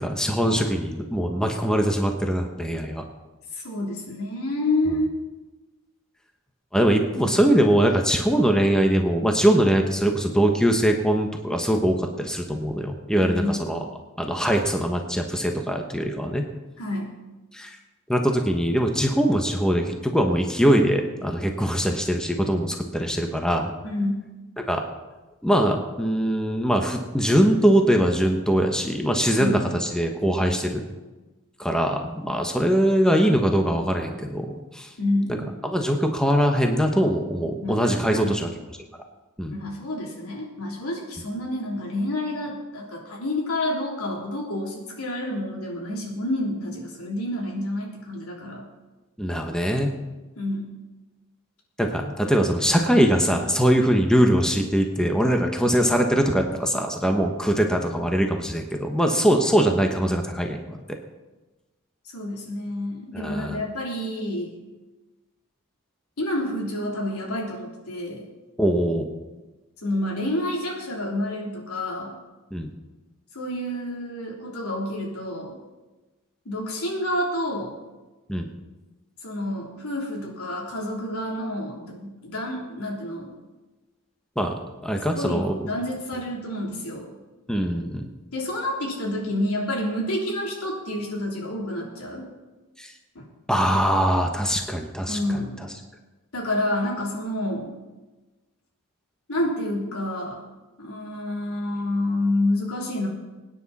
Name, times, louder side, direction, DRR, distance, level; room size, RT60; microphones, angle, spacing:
voice 1, 0.0-3.0 6.7-13.8 14.2-16.5 17.5-17.7 18.1-23.7 24.6-24.8 25.4-30.8 31.6-34.9 35.3-35.4 35.6-38.5 39.4-39.5 49.2-49.9 51.8-60.8 63.1-63.6 68.6-69.0 72.5-72.7 78.3-78.5 84.4-84.5 84.8-85.6 87.5-88.1 92.8-92.9 93.5-95.2, equal, 5° left, 3 dB, 1.1 m, -22 dB
voice 2, 3.5-5.1 7.3-7.4 13.2-13.6 16.8-17.2 23.8-24.3 29.3-29.6 35.0-35.4 37.6-37.8 38.1-38.4 39.5-48.6 50.4-50.7 62.1-64.6 66.2-68.3 69.8-72.2 73.3-75.6 76.5-77.8 79.2-83.3 85.1-87.1 88.3-92.3 93.2-93.3 95.1-95.5 96.3-97.7 99.3-100.4 100.8-103.1, left 1 dB, 75° left, -1 dB, 3.4 m, -28 dB
23.0 x 9.9 x 4.2 m, 1.2 s
head